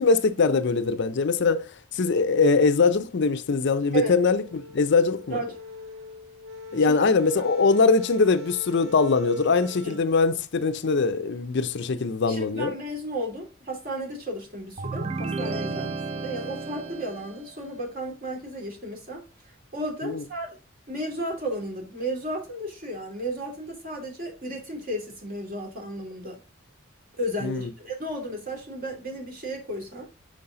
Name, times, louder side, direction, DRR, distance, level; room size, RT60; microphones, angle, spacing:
voice 1, 0.0-1.6 1.9-5.4 6.7-12.7 20.0-20.2 27.4-27.6, left 4 dB, 60° left, 0.5 m, -22 dB
sound 1, 3.9-10.0, left 4 dB, 90° right, 1.2 m, -42 dB
voice 2, 12.3-19.2 19.7-20.6 20.9-26.4 27.2-30.1, right 1 dB, 45° right, 2.6 m, -33 dB
sound 2, 14.8-17.6, right 3 dB, 30° right, 0.4 m, -32 dB
5.5 x 5.1 x 3.7 m
head